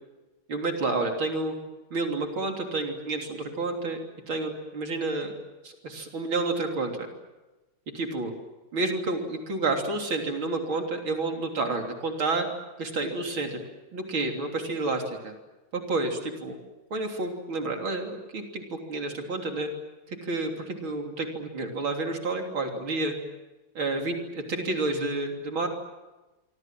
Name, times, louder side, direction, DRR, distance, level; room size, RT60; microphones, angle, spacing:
voice 1, 0.5-1.5 1.9-4.0 4.3-5.3 5.6-7.1 7.9-8.3 8.7-12.5 12.8-13.6 13.9-15.3 15.7-16.6 16.9-19.7 20.1-23.1 23.8-25.7, right 2 dB, 80° right, 3 dB, 4.1 m, -30 dB
25.5 x 25.0 x 7.5 m, 1.1 s
omnidirectional pair, 2.2 m